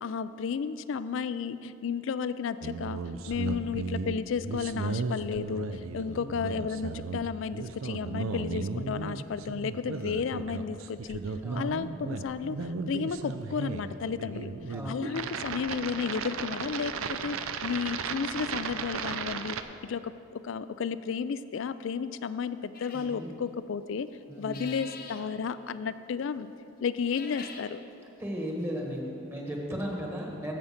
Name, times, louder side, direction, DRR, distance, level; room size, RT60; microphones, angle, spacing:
voice 1, 0.0-3.0 3.3-11.2 11.6-14.5 14.9-24.1 24.4-26.5 26.8-27.8, left 6 dB, 60° left, 14 dB, 0.3 m, -33 dB
sound 1, 2.6-19.6, right 4 dB, 75° right, 0.5 m, -35 dB
voice 2, 11.4-11.8 14.7-15.3 22.9-23.3 24.3-24.8 28.2-30.6, equal, 10° right, -1 dB, 1.2 m, -36 dB
sound 2, 22.7-23.2 24.4-25.2 27.0-27.7, left 5 dB, 45° left, 0.8 m, -45 dB
15.0 x 5.1 x 5.7 m, 2.8 s
head